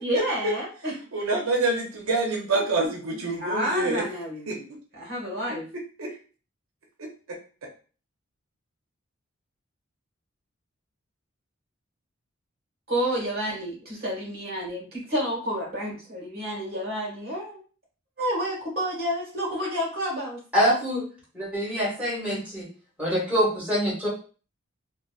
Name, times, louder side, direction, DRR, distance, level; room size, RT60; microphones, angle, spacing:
voice 1, 0.0-1.0 3.4-4.7 4.9-5.7 12.9-17.6 18.2-20.4, equal, 50° right, -3 dB, 1.4 m, -30 dB
voice 2, 1.1-4.0 4.5-4.8 6.0-6.2 7.0-7.1, right 2 dB, 80° right, 1 dB, 0.6 m, -26 dB
voice 3, 20.5-21.0 21.3-22.7 23.0-24.1, equal, 5° right, -7 dB, 1.6 m, -25 dB
3.8 x 2.3 x 2.3 m, 0.38 s
head